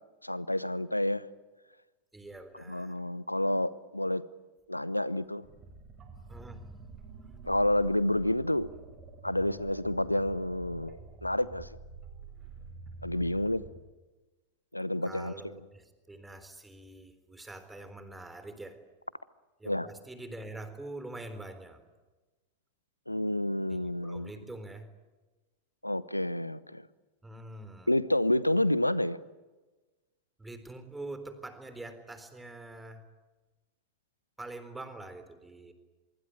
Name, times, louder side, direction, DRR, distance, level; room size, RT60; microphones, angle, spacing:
voice 1, 0.2-1.3 2.5-4.2 4.7-5.4 7.4-8.7 9.2-11.7 13.0-13.6 14.7-15.6 19.6-19.9 23.1-24.3 25.8-26.9 27.9-29.2, left 1 dB, 85° left, 18 dB, 0.9 m, -29 dB
voice 2, 2.1-3.0 6.3-6.7 7.2-7.3 15.0-18.8 19.6-21.8 23.7-24.9 27.2-27.9 30.4-33.0 34.4-35.7, right 2 dB, 10° right, 9 dB, 3.8 m, -45 dB
sound 1, 5.4-13.7, right 4 dB, 30° right, 7.6 m, -48 dB
24.5 x 24.0 x 9.5 m, 1.2 s
figure-of-eight pair, 90°, 0 cm